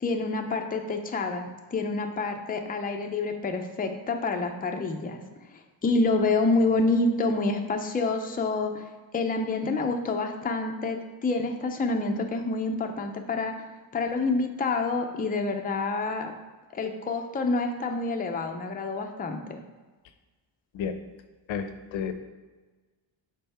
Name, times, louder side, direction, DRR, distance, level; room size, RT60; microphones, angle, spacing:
voice 1, 0.0-5.2 5.8-8.8 9.1-13.5 13.9-16.3 16.7-19.6, left 3 dB, 20° left, 4 dB, 0.5 m, -27 dB
voice 2, 21.5-22.1, left 7 dB, 75° left, 8 dB, 0.7 m, -31 dB
5.6 x 4.1 x 4.2 m, 1.3 s
cardioid pair, 125°, 46 cm